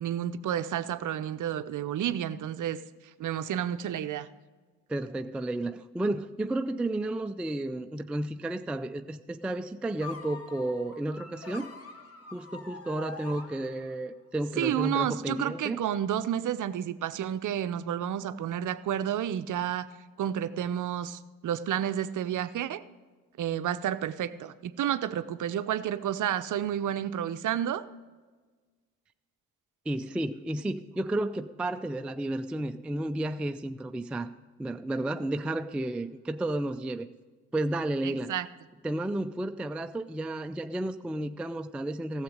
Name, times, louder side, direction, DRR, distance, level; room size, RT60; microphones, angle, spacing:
voice 1, 0.0-2.8 3.2-4.3 14.6-19.9 20.2-22.8 23.4-27.8 38.0-38.5, right 10 dB, 45° right, 13 dB, 0.7 m, -30 dB
voice 2, 4.9-11.7 12.3-15.8 29.9-34.3 34.6-37.1 37.5-38.3 38.8-42.2, right 1 dB, 5° right, 8 dB, 0.4 m, -32 dB
sound 1, 10.0-14.1, left 4 dB, 30° left, 1.5 m, -45 dB
15.5 x 7.3 x 5.1 m, 1.4 s
hypercardioid pair, 50°, 45 cm